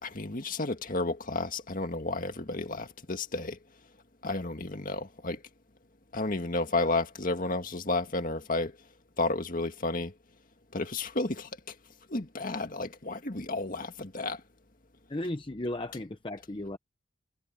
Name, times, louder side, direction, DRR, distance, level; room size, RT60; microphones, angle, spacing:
voice 1, 0.0-3.6 4.2-5.4 6.1-8.7 9.2-10.1 10.7-11.5 12.1-14.4, left 2 dB, 45° left, 1.9 m, -32 dB
voice 2, 15.1-16.8, left 1 dB, 25° left, 0.8 m, -35 dB
head